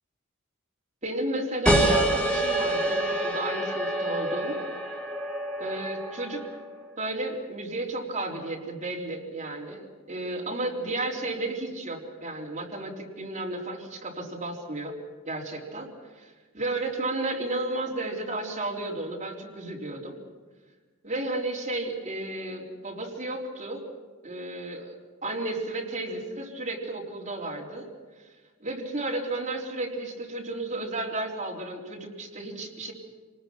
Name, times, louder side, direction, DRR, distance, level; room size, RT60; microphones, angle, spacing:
voice 1, 1.0-4.6 5.6-6.4 7.0-14.9 15.3-15.9 16.2-20.2 21.0-23.8 24.2-27.9 28.6-32.9, right 2 dB, 35° right, -2 dB, 4.0 m, -33 dB
sound 1, 1.6-6.8, right 1 dB, 5° left, 2.9 m, -27 dB
27.0 x 20.0 x 6.0 m, 1.4 s
head